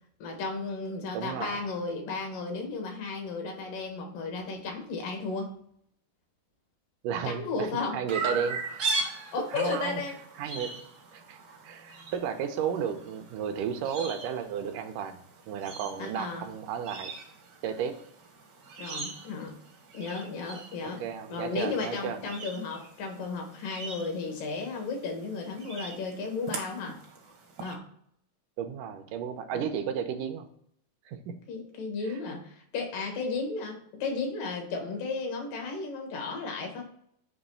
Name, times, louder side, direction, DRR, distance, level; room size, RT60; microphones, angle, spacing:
voice 1, 0.2-5.5 7.2-8.0 9.3-10.2 16.0-16.4 18.8-19.6 19.9-21.0 21.3-27.0 27.6-27.8 29.5-29.7 31.5-36.8, left 3 dB, 85° left, 2 dB, 3.1 m, -34 dB
voice 2, 1.1-1.6 7.0-7.7 7.9-8.8 9.5-10.0 10.4-10.8 11.1-11.4 11.6-15.2 15.5-17.1 17.6-18.0 21.0-22.2 28.6-30.5 31.1-31.4, right 7 dB, 80° right, 7 dB, 2.2 m, -33 dB
Chirp tweet, 8.1-27.7, right 3 dB, 65° right, 1.0 m, -40 dB
7.1 x 3.1 x 5.4 m, 0.67 s
omnidirectional pair, 3.7 m